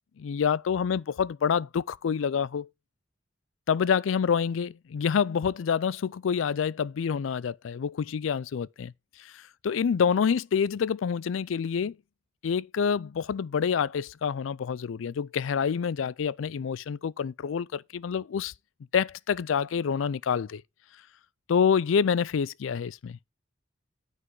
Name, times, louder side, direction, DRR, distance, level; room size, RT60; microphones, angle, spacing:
voice 1, 0.2-2.7 3.7-8.9 9.2-12.0 12.4-18.5 18.9-20.6 21.5-23.2, left 7 dB, 80° left, 0.4 m, -27 dB
9.8 x 5.5 x 4.7 m
head